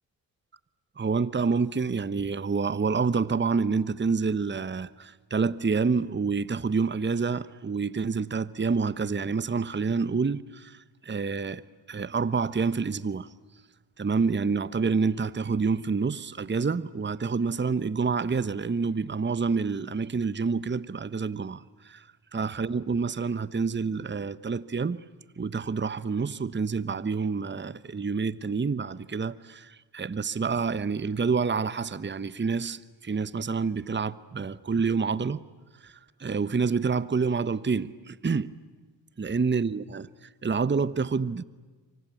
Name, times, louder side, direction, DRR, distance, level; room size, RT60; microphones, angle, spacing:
voice 1, 1.0-11.6 11.9-13.3 14.0-25.0 25.4-35.4 35.8-38.5 39.2-41.4, right 5 dB, 25° right, 1.0 m, -28 dB
27.5 x 24.5 x 8.5 m
supercardioid pair, 45°, 48 cm